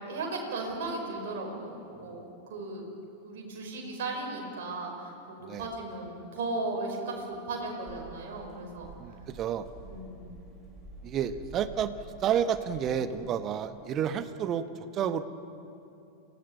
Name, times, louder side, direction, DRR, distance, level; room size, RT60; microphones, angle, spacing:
voice 1, 0.0-2.2 2.5-2.9 3.2-8.9 9.8-10.2, right 2 dB, 55° right, 0 dB, 5.3 m, -36 dB
sound 1, 7.9-13.3, right 2 dB, 15° right, 6.4 m, -49 dB
voice 2, 9.0-9.7 11.0-11.9 12.2-14.7 14.9-15.2, right 8 dB, 30° right, 12 dB, 1.1 m, -30 dB
27.5 x 17.0 x 7.1 m, 2.7 s
figure-of-eight pair, 90°, 0 cm